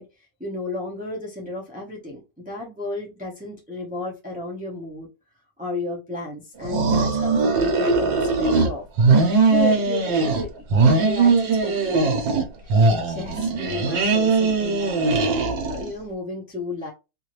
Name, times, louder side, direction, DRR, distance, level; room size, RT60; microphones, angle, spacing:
voice 1, 0.0-5.1 5.6-8.9 9.2-16.9, left 2 dB, 10° right, 0.6 m, -33 dB
sound 1, 6.6-8.7 9.0-10.4 10.7-12.4 12.7-15.9, right 3 dB, 75° right, 1.8 m, -20 dB
3.7 x 2.8 x 3.0 m
omnidirectional pair, 2.1 m